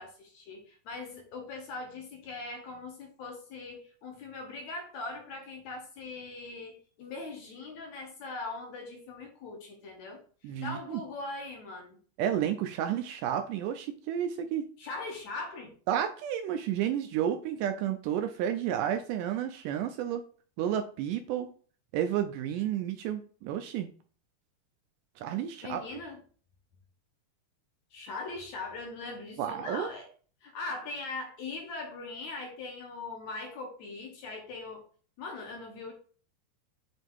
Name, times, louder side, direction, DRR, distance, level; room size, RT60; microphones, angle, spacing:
voice 1, 0.0-12.0 14.8-15.7 25.6-26.2 27.9-30.1 30.4-34.8 35.2-35.9, left 3 dB, 70° left, 1 dB, 1.8 m, -41 dB
voice 2, 10.4-11.0 12.2-14.7 15.9-20.2 20.6-21.5 21.9-23.9 25.2-25.8 29.4-29.9, right 10 dB, 85° right, 7 dB, 1.8 m, -31 dB
7.7 x 2.7 x 4.6 m, 0.43 s
omnidirectional pair, 4.2 m